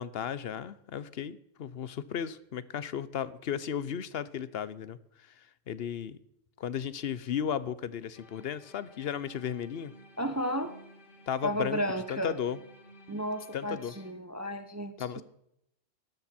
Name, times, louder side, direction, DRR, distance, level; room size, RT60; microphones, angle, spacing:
voice 1, 0.0-6.2 6.6-9.9 11.3-11.8 12.1-12.6 13.5-13.9 15.0-15.2, left 8 dB, 65° left, 16 dB, 0.9 m, -35 dB
sound 1, 8.1-14.1, equal, 50° left, 1.5 m, -55 dB
voice 2, 10.2-10.7 11.4-12.3 13.1-15.2, equal, 15° right, 8 dB, 0.8 m, -33 dB
13.0 x 12.0 x 4.3 m, 0.79 s
omnidirectional pair, 1.1 m